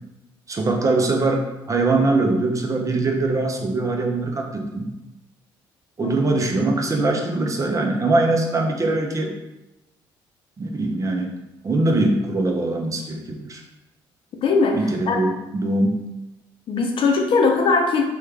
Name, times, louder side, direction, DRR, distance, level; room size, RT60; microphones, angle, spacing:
voice 1, 0.5-4.9 6.0-9.3 10.6-11.3 11.6-13.6 14.7-16.0, right 2 dB, 30° right, 2 dB, 0.6 m, -22 dB
voice 2, 14.4-15.2 16.7-18.0, left 4 dB, 60° left, 3 dB, 0.6 m, -20 dB
3.1 x 2.3 x 3.3 m, 0.97 s
supercardioid pair, 70°, 10 cm